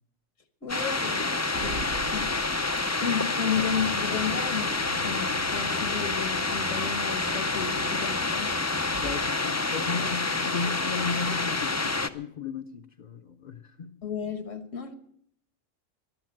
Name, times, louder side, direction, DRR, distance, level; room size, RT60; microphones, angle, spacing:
voice 1, 0.6-1.3 1.6-2.3 3.0-8.6 14.0-14.9, left 7 dB, 75° left, 1.7 m, -33 dB
sound 1, 0.7-12.1, left 3 dB, 25° left, 0.3 m, -28 dB
sound 2, 1.6-3.2, right 3 dB, 65° right, 1.1 m, -40 dB
sound 3, 3.5-9.3, right 2 dB, 35° right, 1.1 m, -43 dB
voice 2, 9.0-14.0, left 5 dB, 40° left, 0.7 m, -35 dB
14.0 x 11.5 x 7.7 m
omnidirectional pair, 1.3 m